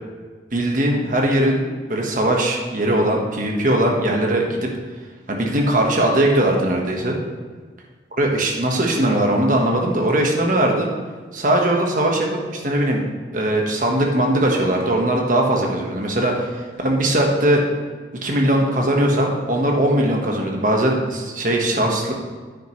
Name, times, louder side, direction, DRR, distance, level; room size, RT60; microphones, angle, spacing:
voice 1, 0.5-4.7 5.3-7.2 8.2-10.9 11.3-13.0 13.3-17.6 18.2-22.1, right 1 dB, 50° right, 0 dB, 1.4 m, -20 dB
9.3 x 9.2 x 3.2 m, 1.4 s
head